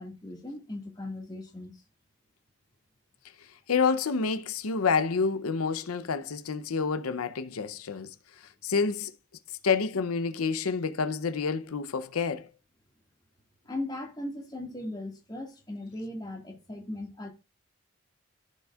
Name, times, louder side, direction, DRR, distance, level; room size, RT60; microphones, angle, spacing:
voice 1, 0.0-1.8 13.6-17.3, left 1 dB, 20° left, 1.8 m, -38 dB
voice 2, 3.7-8.1 8.6-9.1 9.6-12.5, left 5 dB, 90° left, 0.7 m, -28 dB
15.0 x 5.4 x 2.4 m
head